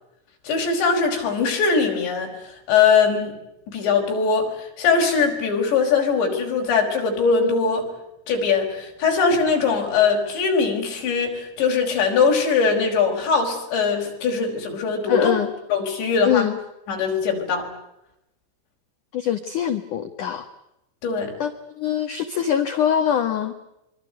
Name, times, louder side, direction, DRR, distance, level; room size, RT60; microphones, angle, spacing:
voice 1, 0.5-2.3 2.7-3.4 3.7-7.9 8.3-15.3 15.7-16.5 16.9-17.7 21.0-21.3, left 5 dB, 60° left, 1 dB, 7.3 m, -21 dB
voice 2, 15.1-15.5 16.2-16.6 19.1-20.5 21.4-23.5, left 9 dB, 90° left, 8 dB, 1.7 m, -23 dB
26.0 x 24.5 x 8.0 m, 0.87 s
omnidirectional pair, 5.9 m